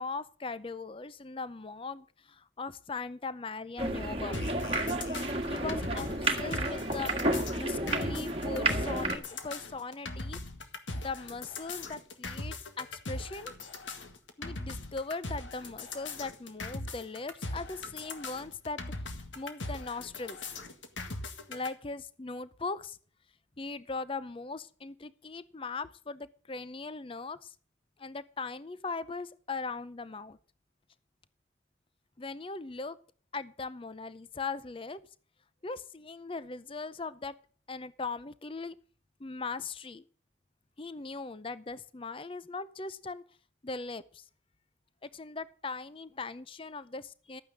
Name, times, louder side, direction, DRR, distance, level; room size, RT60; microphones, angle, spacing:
voice 1, 0.0-4.4 5.5-10.4 11.0-13.6 14.4-18.8 19.4-20.4 21.5-23.0 23.6-27.5 28.0-30.4 32.2-33.0 33.3-35.0 35.6-37.3 37.7-38.7 39.2-40.0 40.8-43.2 43.6-44.2 45.0-47.4, left 4 dB, 30° left, 16 dB, 0.6 m, -39 dB
sound 1, 3.8-9.2, right 2 dB, 30° right, 1.8 m, -31 dB
sound 2, 4.3-21.7, left 2 dB, 80° left, 1.8 m, -40 dB
12.5 x 9.3 x 6.4 m, 0.43 s
head